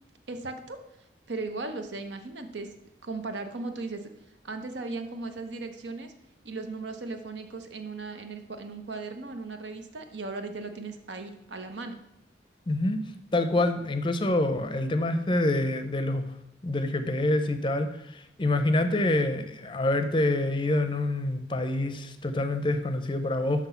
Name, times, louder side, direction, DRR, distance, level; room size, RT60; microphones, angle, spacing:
voice 1, 0.3-0.8 1.3-2.7 3.0-4.1 4.4-6.1 6.4-12.0, right 3 dB, 80° right, 7 dB, 0.9 m, -37 dB
voice 2, 12.7-13.0 13.3-16.3 16.6-23.7, left 1 dB, 25° left, 9 dB, 0.5 m, -26 dB
6.0 x 6.0 x 5.6 m, 0.80 s
head